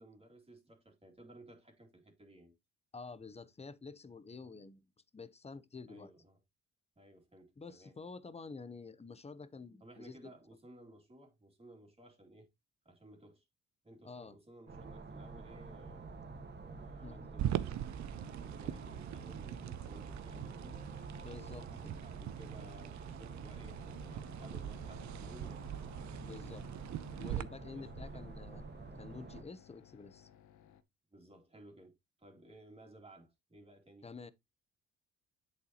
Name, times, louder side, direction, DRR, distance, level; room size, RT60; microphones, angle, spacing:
voice 1, 0.0-2.5 4.4-4.6 5.9-6.4 7.0-8.0 9.8-12.5 12.8-13.4 13.8-16.2 16.6-20.9 21.3-25.6 27.7-28.3 30.0-30.1 30.7-30.8 31.1-34.1, right 1 dB, 20° right, 2.8 m, -57 dB
voice 2, 2.9-4.8 5.1-6.1 7.6-10.3 14.0-14.4 17.0-17.4 21.2-21.9 26.2-26.7 27.2-28.6 29.0-30.3 34.0-34.3, left 4 dB, 20° left, 0.8 m, -49 dB
sound 1, 14.7-29.4, right 3 dB, 35° right, 1.6 m, -48 dB
sound 2, 17.4-27.4, right 11 dB, 65° right, 0.7 m, -42 dB
sound 3, 23.8-30.8, left 9 dB, 70° left, 1.0 m, -59 dB
8.2 x 6.7 x 2.9 m
cardioid pair, 90°, 30 cm